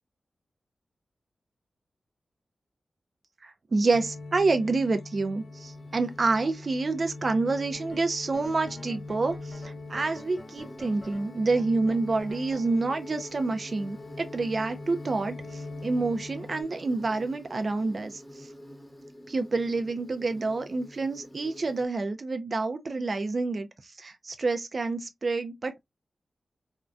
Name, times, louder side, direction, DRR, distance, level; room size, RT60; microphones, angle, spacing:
voice 1, 3.4-18.5 19.3-25.8, right 3 dB, 40° right, 0.4 m, -28 dB
sound 1, 3.9-16.6, left 2 dB, 75° left, 0.8 m, -42 dB
Insect, 5.2-21.8, equal, 5° left, 0.9 m, -49 dB
sound 2, 7.7-12.7, left 2 dB, 35° left, 1.1 m, -49 dB
3.7 x 2.2 x 2.2 m
wide cardioid pair, 140°, 0 cm